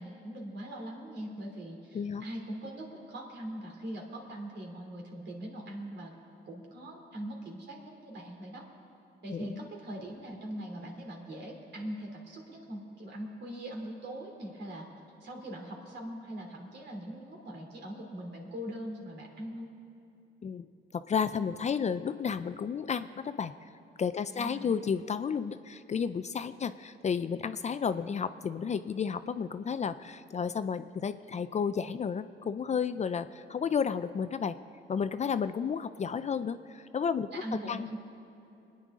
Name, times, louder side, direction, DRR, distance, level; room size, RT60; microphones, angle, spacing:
voice 1, 0.0-6.1 6.5-8.7 9.2-14.9 15.2-19.7 24.3-24.9 37.3-38.0, right 1 dB, 60° right, 1 dB, 3.0 m, -41 dB
voice 2, 1.9-2.3 9.3-9.6 20.4-20.7 20.9-23.5 24.0-34.6 34.9-37.4 37.7-37.9, left 6 dB, 35° left, 12 dB, 0.4 m, -32 dB
24.0 x 9.8 x 3.7 m, 2.9 s
cardioid pair, 90°, 20 cm